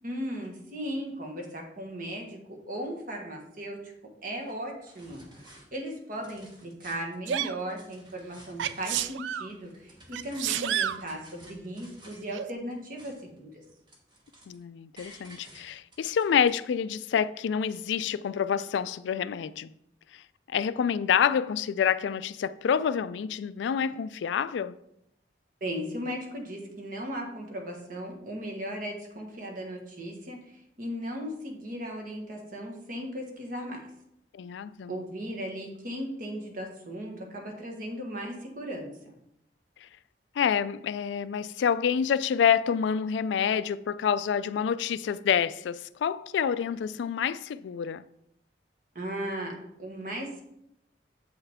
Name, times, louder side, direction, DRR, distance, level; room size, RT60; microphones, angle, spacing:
voice 1, 0.0-3.9 4.2-5.2 5.7-13.5 25.6-33.8 34.9-39.1 48.9-50.4, equal, 50° right, 1.4 m, -37 dB
sound 1, 4.4-4.5 4.9-5.7 6.1-7.2 7.6-9.1 9.5-12.3 12.7-13.4 13.6-14.6 15.0-16.5, right 1 dB, 25° right, 1.3 m, -53 dB
Sneeze, 7.3-7.6 8.6-9.5 10.1-11.0 12.3-12.5, right 10 dB, 80° right, 0.3 m, -30 dB
voice 2, 14.5-19.7 20.5-24.8 34.3-35.0 40.4-48.0, left 7 dB, 80° left, 0.3 m, -27 dB
7.8 x 5.6 x 3.5 m
head